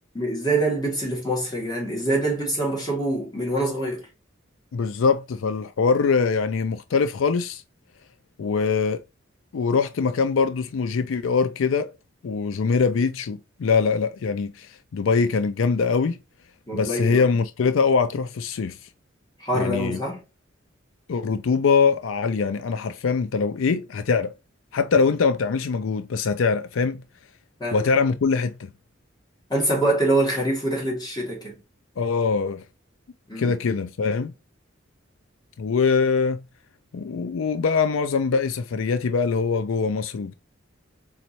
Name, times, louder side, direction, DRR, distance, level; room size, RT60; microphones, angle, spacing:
voice 1, 0.2-4.1 16.7-17.2 19.4-20.2 27.6-27.9 29.5-31.6 33.3-33.6, right 1 dB, 20° left, 1.9 m, -25 dB
voice 2, 4.7-7.6 8.4-9.0 9.5-11.9 12.2-16.2 16.7-18.8 19.5-20.0 21.1-24.3 24.7-27.0 27.7-28.7 32.0-32.6 33.4-34.3 35.6-36.4 36.9-40.3, left 5 dB, 85° left, 0.4 m, -23 dB
4.2 x 4.0 x 2.9 m
head